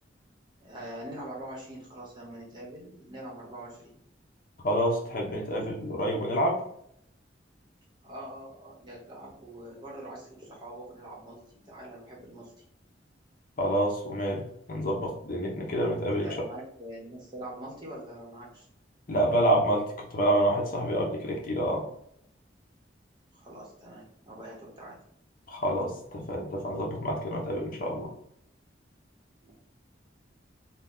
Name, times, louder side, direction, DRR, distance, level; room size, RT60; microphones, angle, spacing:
voice 1, 0.6-3.9 5.5-5.8 8.0-11.4 11.7-12.5 16.2-18.7 23.3-25.0 29.4-29.5, right 1 dB, 25° right, -4 dB, 1.0 m, -43 dB
voice 2, 4.6-6.6 13.6-14.4 14.7-16.3 19.1-19.8 20.1-21.8 25.5-28.1, right 1 dB, 50° left, 0 dB, 0.7 m, -27 dB
2.8 x 2.2 x 3.5 m, 0.70 s
head